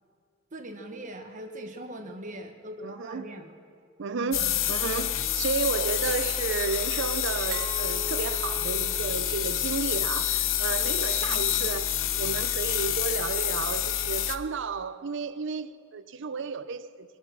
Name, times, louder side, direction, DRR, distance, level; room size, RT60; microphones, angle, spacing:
voice 1, 0.5-3.6 4.1-4.6 11.3-11.7, right 1 dB, 40° right, 1.3 m, -41 dB
voice 2, 2.8-3.3 4.0-17.2, right 5 dB, 60° right, 0.5 m, -32 dB
sound 1, 4.3-14.4, left 10 dB, 65° left, 0.6 m, -28 dB
Glass, 7.5-10.3, right 4 dB, 80° right, 2.2 m, -41 dB
23.0 x 7.9 x 6.1 m
head